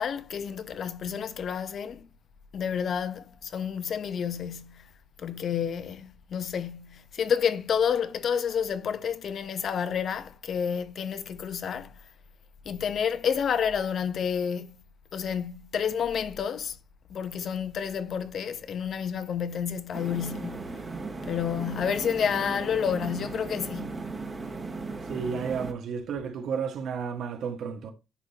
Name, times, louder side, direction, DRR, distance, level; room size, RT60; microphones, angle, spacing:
voice 1, 0.0-2.1 2.5-4.9 5.2-11.9 12.6-14.8 15.1-16.8 17.1-20.8 21.3-24.1, left 7 dB, 60° left, 1.0 m, -30 dB
sound 1, 19.9-25.7, right 3 dB, 30° right, 1.8 m, -37 dB
voice 2, 25.1-27.9, right 6 dB, 75° right, 1.7 m, -32 dB
10.5 x 3.8 x 2.9 m
cardioid pair, 90°, 0 cm